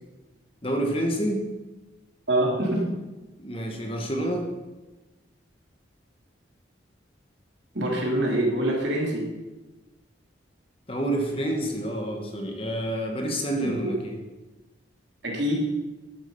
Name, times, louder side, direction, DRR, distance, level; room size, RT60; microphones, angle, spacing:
voice 1, 0.6-1.4 3.4-4.5 10.9-14.2, right 1 dB, 30° left, 2 dB, 1.5 m, -28 dB
voice 2, 2.3-2.9 7.7-9.3 15.2-15.6, right 1 dB, 70° right, -2 dB, 3.2 m, -24 dB
12.0 x 7.7 x 5.5 m, 1.1 s
head